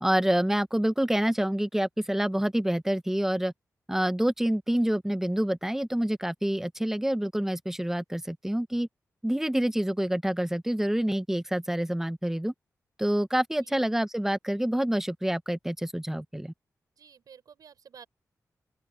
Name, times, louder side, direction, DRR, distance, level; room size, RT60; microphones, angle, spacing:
voice 1, 0.0-3.5 3.9-8.9 9.2-12.5 13.0-16.5, right 1 dB, 5° right, 1.1 m, -27 dB
voice 2, 17.0-18.1, right 7 dB, 85° right, 6.2 m, -51 dB
open air
cardioid pair, 80°, 6 cm